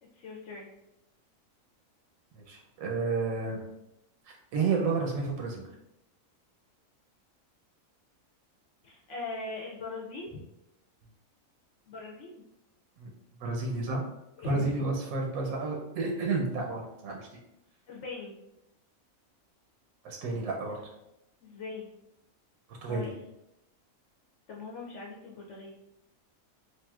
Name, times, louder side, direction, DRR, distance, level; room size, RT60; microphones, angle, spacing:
voice 1, 0.1-0.7 8.8-10.4 11.9-12.4 14.4-14.7 17.9-18.3 21.4-21.9 22.9-23.2 24.5-25.7, left 3 dB, 70° left, -3 dB, 0.8 m, -40 dB
voice 2, 2.3-3.6 4.3-5.6 13.0-13.1 13.4-14.0 14.5-17.3 20.0-20.9 22.7-23.0, right 4 dB, 90° right, 1 dB, 1.1 m, -31 dB
3.4 x 2.5 x 2.3 m, 0.87 s
omnidirectional pair, 1.5 m